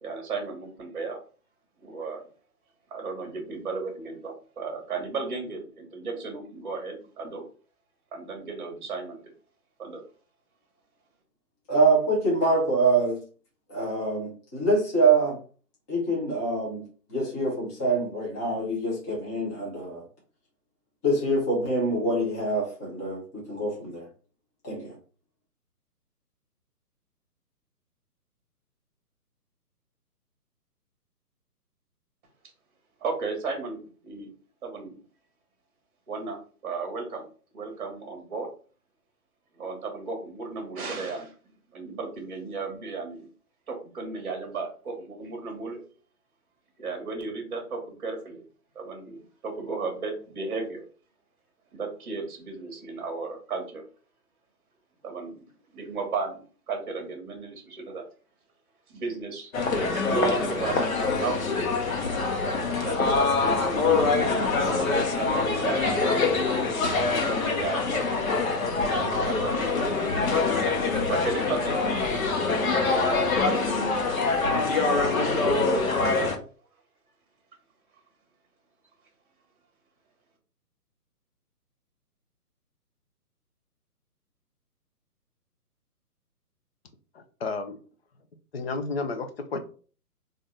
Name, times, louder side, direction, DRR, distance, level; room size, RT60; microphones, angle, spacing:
voice 1, 0.0-1.2 1.8-2.2 2.9-7.5 8.1-9.2 9.8-10.0 33.0-34.3 34.6-35.0 36.1-37.2 37.5-38.5 39.5-41.3 41.7-43.3 43.7-45.8 46.8-48.4 48.7-50.8 51.7-53.8 55.0-58.0 58.9-59.5 59.8-61.6 62.7-66.8 67.1-70.1 71.1-73.8 75.1-76.3, right 4 dB, 30° right, 2 dB, 1.1 m, -35 dB
voice 2, 11.7-13.2 13.7-15.4 15.9-20.0 21.0-24.1 24.6-24.9, right 2 dB, 10° left, -4 dB, 0.7 m, -25 dB
sound 1, 59.5-76.4, left 3 dB, 60° left, 1.0 m, -25 dB
voice 3, 87.1-87.8 88.5-89.6, left 3 dB, 40° left, 8 dB, 0.7 m, -32 dB
4.0 x 2.6 x 3.7 m, 0.40 s
figure-of-eight pair, 135°, 47 cm